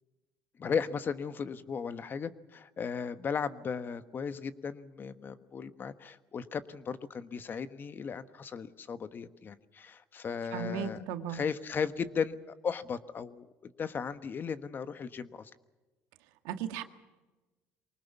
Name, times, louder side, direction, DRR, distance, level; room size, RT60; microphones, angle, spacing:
voice 1, 0.6-15.5, left 6 dB, 40° left, 12 dB, 1.3 m, -36 dB
voice 2, 10.5-11.4 16.5-16.8, right 7 dB, 85° right, 8 dB, 1.8 m, -36 dB
24.0 x 19.5 x 7.2 m, 1.2 s
supercardioid pair, 95°, 5 cm